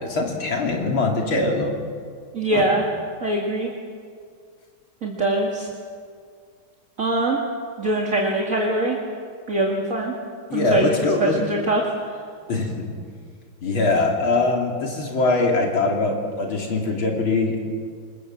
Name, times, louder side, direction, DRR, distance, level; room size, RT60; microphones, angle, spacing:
voice 1, 0.0-1.7 2.5-2.6 10.5-11.4 12.5-12.9 13.6-17.6, left 3 dB, 70° left, 1 dB, 3.6 m, -22 dB
voice 2, 2.3-2.8 3.2-3.7 5.0-5.7 7.0-7.4 7.8-9.0 9.5-10.1 10.5-10.8 11.2-11.8 12.1-12.2, right 2 dB, 40° right, -1 dB, 2.5 m, -22 dB
26.0 x 21.5 x 7.6 m, 2.1 s
omnidirectional pair, 2.3 m